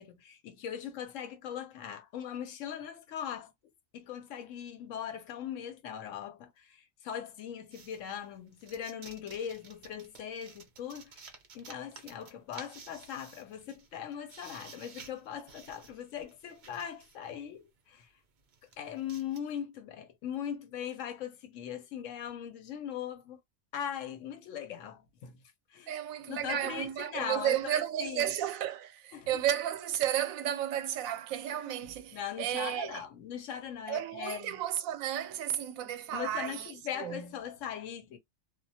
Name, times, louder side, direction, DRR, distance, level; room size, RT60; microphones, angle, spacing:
voice 1, 0.0-3.5 3.9-11.3 11.5-18.1 18.8-23.4 23.7-25.4 25.7-25.9 26.3-28.3 29.1-29.4 31.6-34.6 36.1-38.2, left 9 dB, 75° left, 1.0 m, -40 dB
sound 1, 7.7-17.3 17.9-18.1 18.4-19.4, right 5 dB, 55° right, 0.5 m, -53 dB
voice 2, 25.9-33.0 33.9-37.3, right 11 dB, 90° right, 1.0 m, -33 dB
2.3 x 2.2 x 2.6 m
omnidirectional pair, 1.4 m